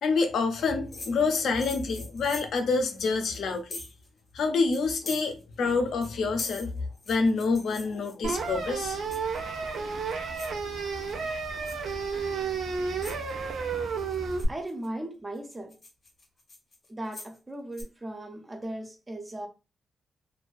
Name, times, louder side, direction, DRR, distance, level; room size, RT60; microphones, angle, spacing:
voice 1, 0.0-3.8 4.3-6.7 7.1-9.0, left 4 dB, 75° left, 0.5 m, -27 dB
sound 1, 0.9-4.1 4.4-4.5 4.7-5.7 6.0-8.5 9.1-9.5 10.0-10.6 11.0-11.3 11.7-11.9 12.6-12.7 13.0-13.3 14.0-14.9 15.4-17.4 17.7-17.8, left 2 dB, 30° left, 0.6 m, -42 dB
sound 2, 8.2-14.4, right 5 dB, 80° right, 0.4 m, -32 dB
voice 2, 14.5-15.8 16.9-19.5, right 1 dB, 15° right, 0.4 m, -37 dB
2.5 x 2.2 x 2.3 m
wide cardioid pair, 175°, 0 cm